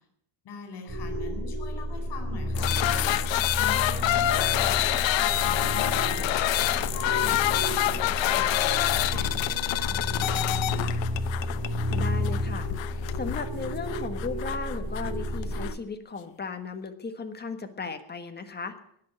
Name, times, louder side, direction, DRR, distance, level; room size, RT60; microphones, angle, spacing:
voice 1, 0.4-3.3 3.6-10.9, left 4 dB, 60° left, 4 dB, 4.3 m, -43 dB
sound 1, 0.9-15.7, equal, 10° right, 3.4 m, -31 dB
sound 2, 2.5-15.8, left 14 dB, 85° left, 0.9 m, -27 dB
voice 2, 11.9-12.7 13.2-18.7, left 4 dB, 20° left, 6 dB, 1.5 m, -35 dB
19.0 x 6.7 x 8.8 m, 0.71 s
cardioid pair, 145°, 44 cm